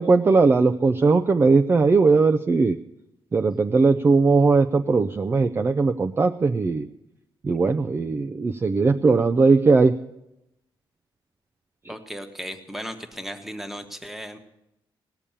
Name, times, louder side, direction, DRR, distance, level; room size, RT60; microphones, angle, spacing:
voice 1, 0.0-2.8 3.3-6.9 7.4-9.9, right 4 dB, 25° right, 6 dB, 0.4 m, -19 dB
voice 2, 11.9-14.4, equal, 5° right, 6 dB, 1.2 m, -36 dB
18.0 x 6.9 x 8.7 m, 0.87 s
cardioid pair, 135°, 9 cm